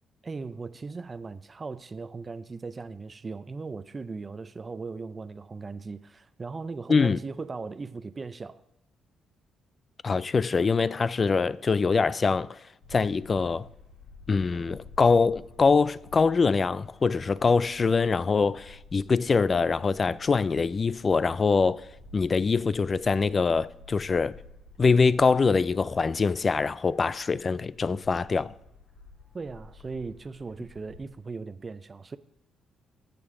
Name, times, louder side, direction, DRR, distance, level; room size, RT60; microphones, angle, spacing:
voice 1, 0.2-8.6 29.3-32.2, right 4 dB, 30° right, 0.5 m, -38 dB
voice 2, 10.0-12.6 12.9-13.7 14.3-21.9 22.1-24.4 24.8-28.5, left 4 dB, 35° left, 0.4 m, -24 dB
Bird / Wind, 12.8-31.1, left 3 dB, 70° left, 4.2 m, -52 dB
19.5 x 6.9 x 3.7 m
cardioid pair, 90°, 0 cm